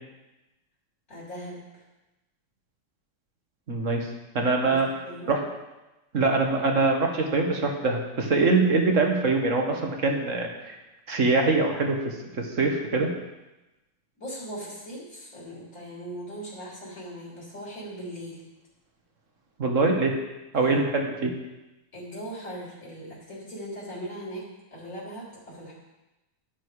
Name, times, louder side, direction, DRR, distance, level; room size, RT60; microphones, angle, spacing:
voice 1, 1.1-1.8 4.6-5.4 14.2-18.4 20.5-20.9 21.9-24.4 24.7-25.7, equal, 45° left, -6 dB, 4.0 m, -39 dB
voice 2, 3.7-4.1 4.3-4.9 5.3-5.4 6.1-10.8 11.1-13.1 19.6-20.1 20.5-21.3, right 3 dB, 45° right, 2 dB, 1.9 m, -23 dB
11.5 x 10.5 x 4.9 m, 1.0 s
omnidirectional pair, 1.9 m